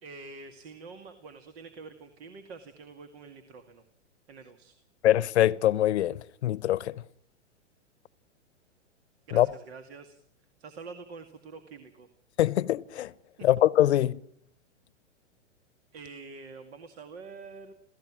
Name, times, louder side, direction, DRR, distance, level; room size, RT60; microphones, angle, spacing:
voice 1, 0.0-3.8 4.3-4.7 9.3-10.2 10.6-12.1 13.4-13.5 15.9-17.7, right 4 dB, 55° right, 2.3 m, -46 dB
voice 2, 5.0-7.0 9.3-9.5 12.4-13.1 13.4-14.2, left 13 dB, 65° left, 0.9 m, -23 dB
27.5 x 17.0 x 6.2 m
hypercardioid pair, 110°, 36 cm